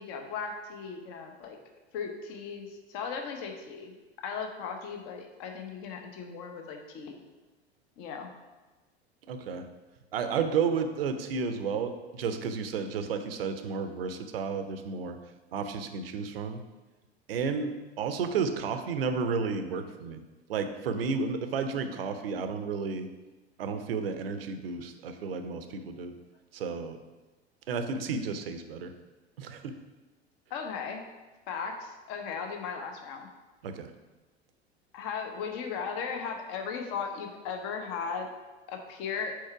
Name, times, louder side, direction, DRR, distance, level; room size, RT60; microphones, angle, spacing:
voice 1, 0.0-1.6 1.9-4.0 4.2-7.2 8.0-8.3 30.5-31.0 31.5-33.3 34.9-38.3 38.7-39.4, left 6 dB, 40° left, 4 dB, 0.9 m, -37 dB
voice 2, 9.3-9.7 10.1-15.2 15.5-16.6 17.3-20.2 20.5-23.1 23.6-26.1 26.5-27.0 27.7-28.9 29.4-29.8 33.6-33.9, right 5 dB, 60° right, 9 dB, 0.6 m, -32 dB
4.6 x 4.3 x 4.6 m, 1.2 s
figure-of-eight pair, 85°, 32 cm